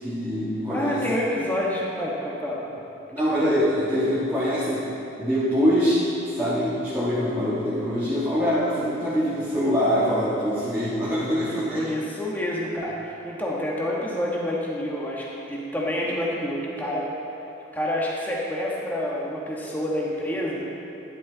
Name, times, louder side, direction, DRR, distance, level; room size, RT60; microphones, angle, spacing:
voice 1, 0.0-1.0 3.1-4.8 5.2-6.0 6.4-11.8, equal, 10° right, -12 dB, 1.9 m, -24 dB
voice 2, 0.7-2.8 3.3-3.5 11.7-17.1 17.7-20.6, left 1 dB, 10° left, -4 dB, 1.5 m, -28 dB
13.5 x 11.0 x 4.1 m, 3.0 s
head